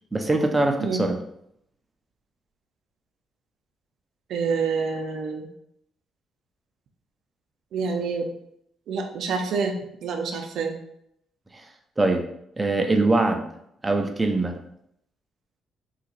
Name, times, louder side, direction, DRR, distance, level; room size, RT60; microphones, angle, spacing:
voice 1, 0.1-1.2 11.5-11.6 12.0-12.2 12.6-13.4 13.8-14.6, right 2 dB, 20° right, 4 dB, 0.5 m, -22 dB
voice 2, 4.3-5.5 7.7-8.3 8.9-10.7, right 5 dB, 75° right, 4 dB, 0.6 m, -27 dB
2.8 x 2.4 x 4.0 m, 0.75 s
cardioid pair, 90°, 0 cm